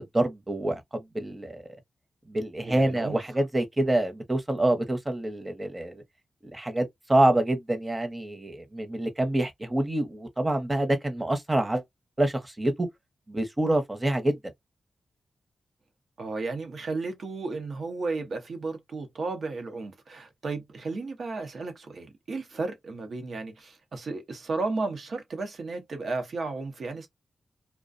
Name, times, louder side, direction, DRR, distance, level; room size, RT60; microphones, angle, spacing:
voice 1, 0.0-1.6 2.3-6.0 6.4-11.8 12.2-12.9 13.3-14.4, right 1 dB, 25° right, 0.8 m, -26 dB
voice 2, 2.6-3.2 16.2-27.1, right 3 dB, 70° right, 0.8 m, -33 dB
2.4 x 2.2 x 2.5 m
cardioid pair, 50°, 0 cm